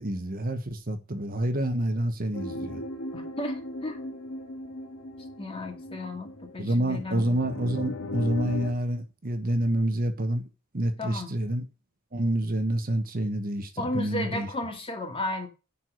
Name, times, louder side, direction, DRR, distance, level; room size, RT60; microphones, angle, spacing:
voice 1, 0.0-2.8 6.6-10.4 10.7-11.7 12.1-14.5, right 1 dB, 45° right, 1.2 m, -28 dB
sound 1, 2.3-8.7, left 1 dB, 85° left, 1.9 m, -37 dB
voice 2, 3.1-4.0 5.4-7.2 11.0-11.3 13.8-15.5, left 1 dB, 25° left, 2.2 m, -34 dB
10.0 x 4.7 x 6.4 m
head